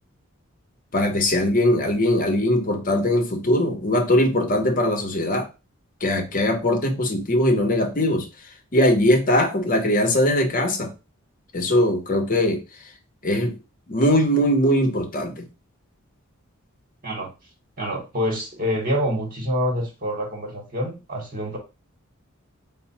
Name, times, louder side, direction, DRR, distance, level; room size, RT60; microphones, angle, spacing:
voice 1, 0.9-5.5 6.0-8.3 8.7-10.9 11.5-12.6 13.2-13.6 13.9-15.5, left 1 dB, 40° left, 5 dB, 0.8 m, -20 dB
voice 2, 17.8-21.6, equal, 40° right, -1 dB, 1.1 m, -26 dB
4.6 x 2.0 x 4.1 m, 0.29 s
head